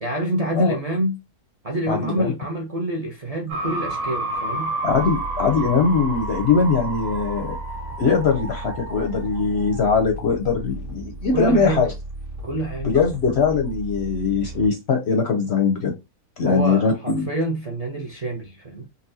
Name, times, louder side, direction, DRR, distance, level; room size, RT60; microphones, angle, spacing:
voice 1, 0.0-1.2 1.6-4.7 11.3-11.9 12.4-12.9 16.4-18.9, right 1 dB, 35° right, 0.6 m, -27 dB
voice 2, 1.9-2.3 4.8-7.6 8.0-11.9 12.8-15.9 16.4-17.3, left 5 dB, 60° left, 0.7 m, -21 dB
sound 1, 3.5-10.0, right 2 dB, 80° right, 1.4 m, -31 dB
sound 2, 4.9-14.7, right 2 dB, 60° right, 1.9 m, -35 dB
4.1 x 2.4 x 2.7 m
omnidirectional pair, 1.5 m